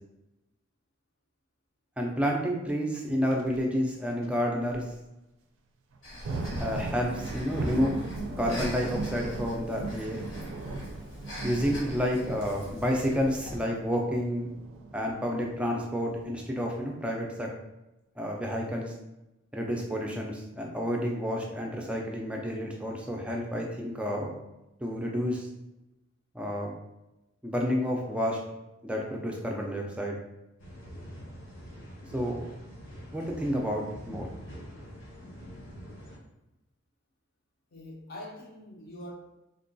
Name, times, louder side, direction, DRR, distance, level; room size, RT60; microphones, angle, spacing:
voice 1, 2.0-4.8 6.6-8.0 8.4-10.3 11.4-14.5 14.9-17.5 18.2-18.9 19.5-24.4 24.8-25.5 26.3-26.7 27.4-28.4 28.8-30.2 32.1-32.4 33.1-34.3, equal, 5° right, 0 dB, 0.3 m, -30 dB
sound 1, 3.3-3.6 4.2-4.3 4.7-4.8 5.9-16.3, right 2 dB, 80° right, 0.4 m, -38 dB
Breathing, 6.0-13.5, equal, 85° left, 1.3 m, -42 dB
sound 2, 30.6-36.2, equal, 70° left, 0.8 m, -45 dB
voice 2, 37.7-39.1, left 1 dB, 50° left, 0 dB, 0.5 m, -43 dB
3.6 x 2.2 x 2.5 m, 0.95 s
head